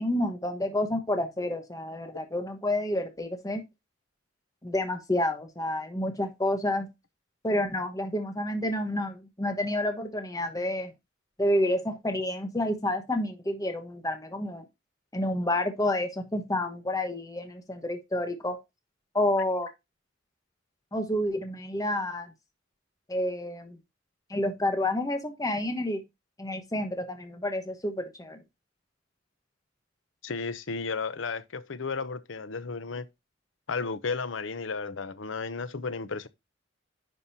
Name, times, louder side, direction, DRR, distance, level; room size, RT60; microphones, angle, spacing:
voice 1, 0.0-3.6 4.6-6.9 7.4-10.9 11.4-14.6 15.1-18.6 19.1-19.7 20.9-22.3 23.1-23.8 24.3-26.0 26.4-28.4, left 1 dB, 20° left, 1.2 m, -29 dB
voice 2, 30.2-33.1 33.7-36.3, left 4 dB, 75° left, 0.8 m, -33 dB
10.5 x 5.3 x 2.7 m
head